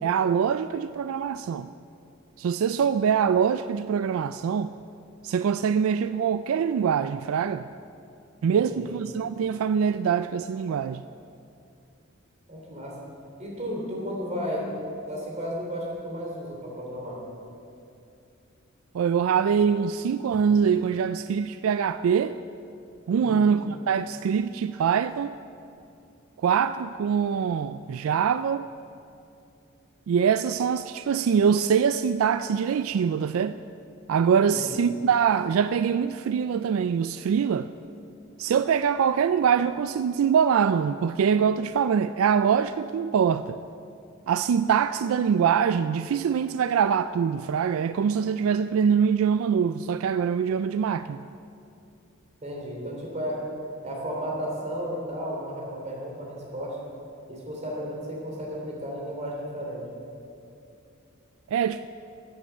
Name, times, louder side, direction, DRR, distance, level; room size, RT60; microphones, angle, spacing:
voice 1, 0.0-1.7 2.4-4.7 5.2-7.6 8.4-11.0 18.9-22.4 23.1-25.3 26.4-28.7 30.1-33.6 34.1-37.7 38.4-43.6 44.3-51.2 61.5-61.9, right 7 dB, 75° right, 13 dB, 0.3 m, -24 dB
voice 2, 8.5-8.9 12.5-12.9 13.4-14.7 15.1-17.2 23.2-23.5 34.4-34.7 52.4-53.4 53.8-56.8 57.3-59.9, equal, 35° right, -2 dB, 3.1 m, -33 dB
14.5 x 8.6 x 6.7 m, 2.7 s
head